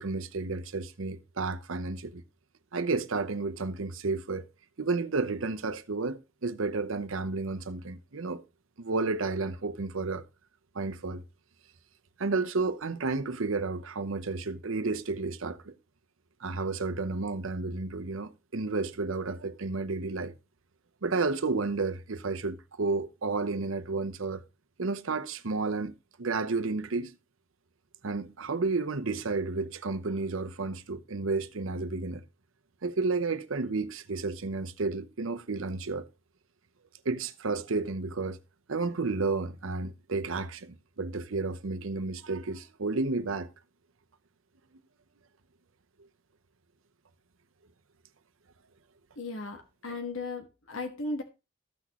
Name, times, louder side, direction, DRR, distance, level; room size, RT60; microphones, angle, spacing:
voice 1, 0.0-2.2 2.7-4.4 4.8-8.4 8.8-10.2 10.7-11.2 12.2-15.7 16.4-20.3 21.0-24.4 24.8-25.9 26.2-27.1 28.0-32.2 32.8-36.0 37.0-38.4 38.7-43.5, right 3 dB, 85° right, 0.8 m, -31 dB
voice 2, 49.2-51.2, left 2 dB, 80° left, 1.4 m, -36 dB
14.5 x 6.1 x 3.0 m
head